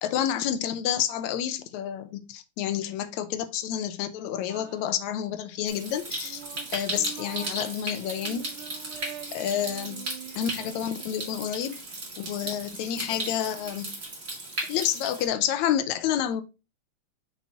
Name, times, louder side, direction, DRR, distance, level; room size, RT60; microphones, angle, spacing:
voice 1, 0.0-6.4 6.7-8.5 9.3-10.1 10.4-11.8 12.2-13.9 14.7-16.4, left 10 dB, 80° left, 2.1 m, -29 dB
sound 1, 4.5-5.3 6.0-11.8 12.1-14.0, right 10 dB, 75° right, 2.1 m, -46 dB
Stream, 5.7-15.2, right 2 dB, 30° right, 2.1 m, -36 dB
7.0 x 5.9 x 2.9 m
omnidirectional pair, 3.3 m